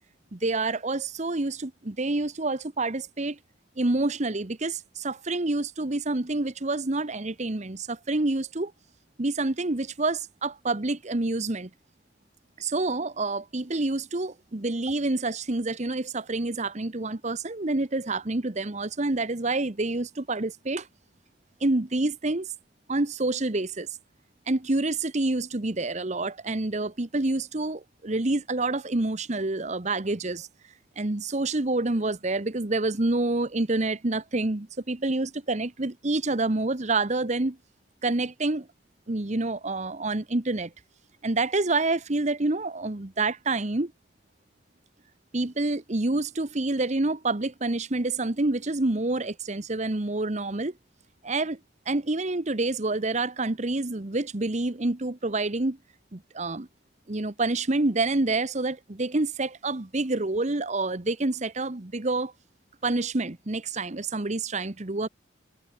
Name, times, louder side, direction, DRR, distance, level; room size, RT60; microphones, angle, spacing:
voice 1, 0.3-3.4 3.8-8.7 9.2-11.7 12.6-20.9 21.6-22.5 22.9-23.9 24.5-30.5 31.0-37.6 38.0-38.7 39.1-40.7 41.2-43.9 45.3-50.7 51.2-51.6 51.9-55.8 56.1-56.7 57.1-62.3 62.8-65.1, right 2 dB, 40° right, 1.1 m, -27 dB
head